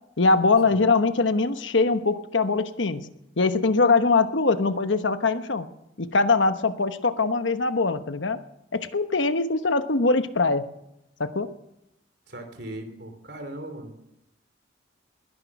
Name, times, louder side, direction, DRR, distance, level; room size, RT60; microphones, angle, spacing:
voice 1, 0.2-3.1 3.4-5.7 6.0-8.4 8.7-10.6 11.2-11.5, left 3 dB, 80° left, 9 dB, 1.1 m, -22 dB
voice 2, 12.3-14.0, right 1 dB, 60° right, 6 dB, 3.1 m, -38 dB
21.0 x 10.5 x 6.0 m, 0.85 s
head